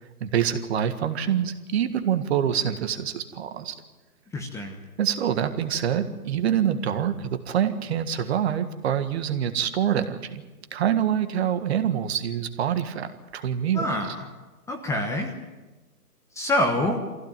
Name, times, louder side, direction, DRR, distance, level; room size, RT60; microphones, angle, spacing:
voice 1, 0.2-3.7 5.0-10.4 10.7-13.9, right 9 dB, 40° right, 9 dB, 1.8 m, -25 dB
voice 2, 4.3-4.8 13.7-14.3 14.7-15.3 16.3-17.0, left 1 dB, 5° left, 3 dB, 1.2 m, -26 dB
24.0 x 16.0 x 9.2 m, 1.2 s
hypercardioid pair, 145°, 47 cm